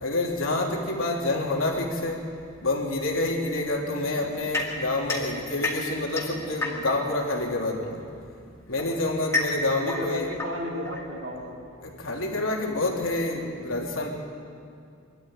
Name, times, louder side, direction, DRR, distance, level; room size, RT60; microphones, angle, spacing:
voice 1, 0.0-2.2 2.6-8.0 8.7-10.3 11.8-14.1, left 2 dB, 80° left, -1 dB, 3.2 m, -28 dB
voice 2, 3.8-4.1 9.7-11.6, equal, 75° right, -3 dB, 4.3 m, -34 dB
sound 1, 4.5-7.1 8.2-11.5, left 2 dB, 15° left, 2.3 m, -32 dB
24.0 x 13.0 x 9.1 m, 2.4 s
head